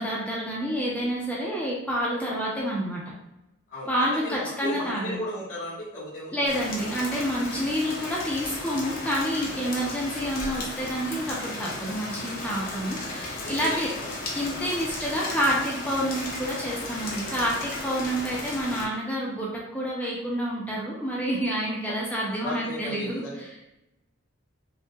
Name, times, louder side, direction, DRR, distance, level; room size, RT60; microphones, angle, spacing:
voice 1, 0.0-3.0 3.9-5.2 6.3-13.9 14.3-23.5, equal, 5° left, -5 dB, 0.7 m, -28 dB
voice 2, 3.7-6.3 7.1-7.2 12.5-12.7 13.4-14.1 14.4-14.6 21.9-22.0 22.3-23.4, equal, 85° left, -12 dB, 1.5 m, -36 dB
Rain, 6.5-18.8, left 2 dB, 45° left, 0.8 m, -35 dB
5.5 x 2.4 x 2.3 m, 0.93 s
head